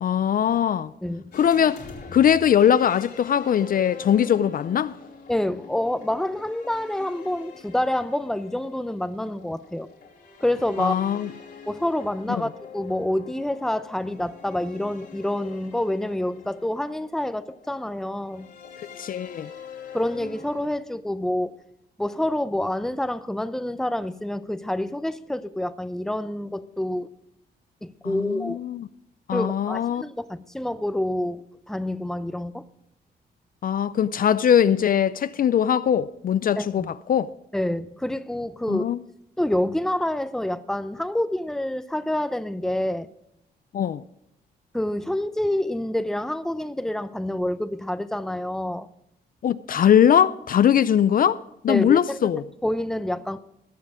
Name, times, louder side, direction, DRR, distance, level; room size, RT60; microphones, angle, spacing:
voice 1, 0.0-0.9 1.3-1.8 2.1-5.0 10.8-11.3 12.3-12.4 19.0-19.5 28.0-28.9 29.3-30.0 33.6-37.3 38.7-39.0 43.7-44.0 49.4-52.4, left 9 dB, 55° left, 0.4 m, -21 dB
sound 1, 1.3-20.7, left 6 dB, 75° left, 2.9 m, -44 dB
voice 2, 5.3-9.9 10.4-11.0 11.7-18.5 19.9-21.5 22.0-27.1 27.8-28.6 29.3-32.6 36.6-36.9 37.5-38.9 39.4-43.1 44.7-48.9 51.7-52.3 52.6-53.4, left 1 dB, 5° left, 0.6 m, -27 dB
19.0 x 6.6 x 4.9 m
cardioid pair, 80°, 18 cm